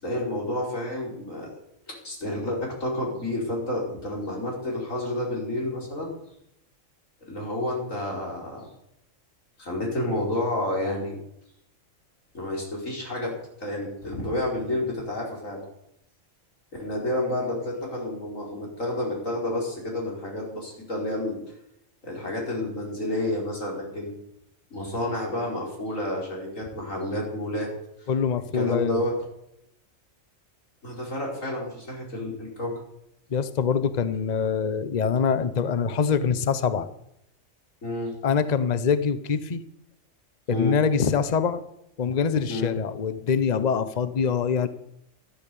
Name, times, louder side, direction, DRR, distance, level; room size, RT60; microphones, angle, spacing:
voice 1, 0.0-1.5 1.9-6.1 7.3-8.7 9.6-11.2 12.3-15.6 16.8-21.4 22.0-24.1 24.7-27.7 28.5-29.1 30.8-32.7 37.8-38.2 40.5-40.8 42.5-42.8, left 1 dB, 70° left, -2 dB, 5.2 m, -30 dB
voice 2, 28.1-29.0 33.3-36.9 38.2-39.6 40.5-41.6 42.0-44.7, left 6 dB, 35° left, 13 dB, 0.8 m, -24 dB
13.0 x 12.0 x 7.0 m, 0.78 s
omnidirectional pair, 1.4 m